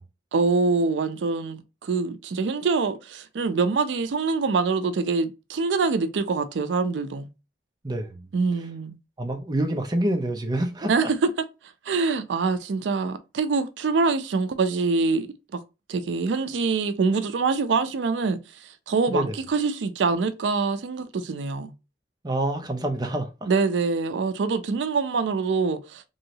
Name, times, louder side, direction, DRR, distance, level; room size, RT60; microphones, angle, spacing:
voice 1, 0.3-7.3 8.3-9.0 10.9-11.3 11.9-15.3 15.5-15.6 15.9-21.7 23.5-26.0, right 4 dB, 85° right, 0.4 m, -25 dB
voice 2, 7.8-8.3 9.2-11.1 19.1-19.4 22.2-23.5, right 1 dB, 25° right, 0.5 m, -27 dB
3.0 x 2.7 x 2.7 m
head